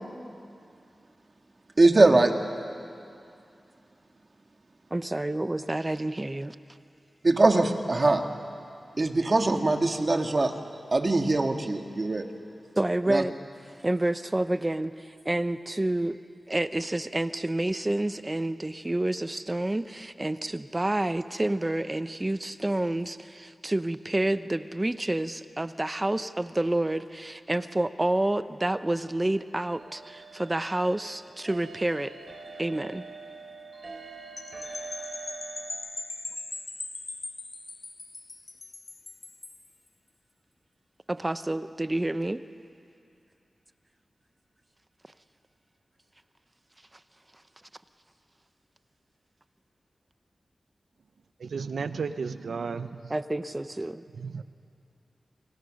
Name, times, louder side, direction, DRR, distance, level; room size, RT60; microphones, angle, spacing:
voice 1, 1.8-2.3 7.2-8.2 9.0-10.5 10.9-12.2 13.1-13.2, right 2 dB, 40° right, 5 dB, 1.7 m, -22 dB
voice 2, 4.9-6.5 12.8-13.4 13.8-16.2 16.5-32.1 32.6-33.1 41.1-42.4 53.1-54.0, right 1 dB, 25° right, 12 dB, 0.8 m, -29 dB
sound 1, 29.3-35.7, right 4 dB, 70° right, 3.8 m, -44 dB
sound 2, 34.4-39.7, left 3 dB, 55° left, 2.3 m, -40 dB
voice 3, 51.4-53.0 54.2-54.4, right 5 dB, 90° right, 11 dB, 0.6 m, -33 dB
27.5 x 24.5 x 6.4 m, 2.5 s
wide cardioid pair, 70°, 0 cm